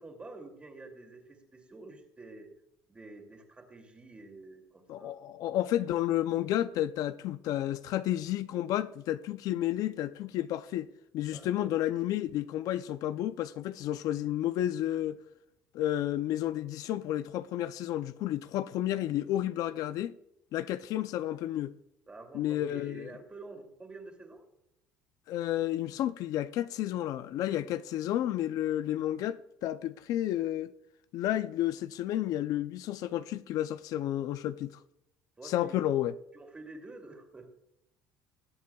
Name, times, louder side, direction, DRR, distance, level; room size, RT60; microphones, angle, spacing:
voice 1, 0.0-2.5 2.9-5.2 11.3-11.7 22.1-24.4 35.4-35.8 36.3-37.5, right 2 dB, 20° right, 2.5 m, -48 dB
voice 2, 4.9-15.2 15.7-20.2 20.5-21.7 22.3-23.1 25.3-30.7 31.1-34.8 35.4-36.1, left 13 dB, 65° left, 0.5 m, -31 dB
21.0 x 8.5 x 2.3 m
cardioid pair, 120°, 6 cm